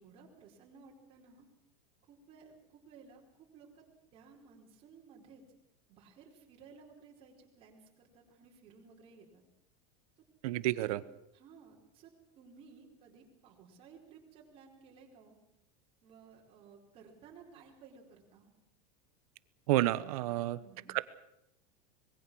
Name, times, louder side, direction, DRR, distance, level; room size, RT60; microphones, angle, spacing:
voice 1, 0.0-1.5 2.1-3.8 4.1-5.4 5.9-9.4 10.8-11.0 11.3-15.4 16.0-18.5 20.6-20.9, right 5 dB, 30° right, -1 dB, 4.7 m, -57 dB
voice 2, 10.4-11.0 19.7-20.6 20.9-21.0, right 16 dB, 70° right, 15 dB, 1.1 m, -30 dB
25.0 x 21.5 x 6.3 m, 0.80 s
supercardioid pair, 175°, 19 cm